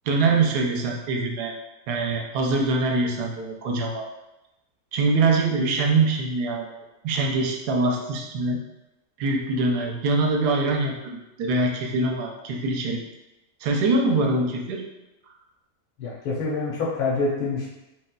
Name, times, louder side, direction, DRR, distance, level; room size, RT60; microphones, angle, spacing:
voice 1, 0.1-1.6 1.9-4.1 4.9-6.7 7.0-8.6 9.2-13.0 13.6-14.8, right 3 dB, 90° right, 1 dB, 1.1 m, -23 dB
voice 2, 16.0-17.7, left 3 dB, 85° left, -5 dB, 1.2 m, -26 dB
3.1 x 2.9 x 2.2 m, 0.97 s
omnidirectional pair, 1.6 m